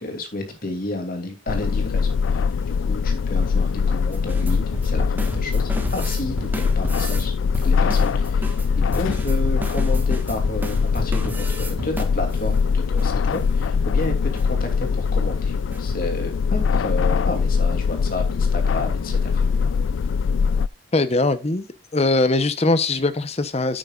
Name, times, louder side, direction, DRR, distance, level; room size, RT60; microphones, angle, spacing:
voice 1, 0.0-19.4, left 2 dB, 50° left, 2.8 m, -31 dB
sound 1, 1.5-20.7, left 5 dB, 75° left, 0.3 m, -22 dB
sound 2, 4.1-7.3 7.5-12.5 13.0-13.1 13.3-13.5 13.8-14.1 14.3-14.4 14.9-15.1 15.5-16.0, right 1 dB, 10° right, 1.5 m, -33 dB
voice 2, 20.9-21.7 21.9-23.8, left 2 dB, 35° left, 0.9 m, -21 dB
10.5 x 8.9 x 2.5 m
head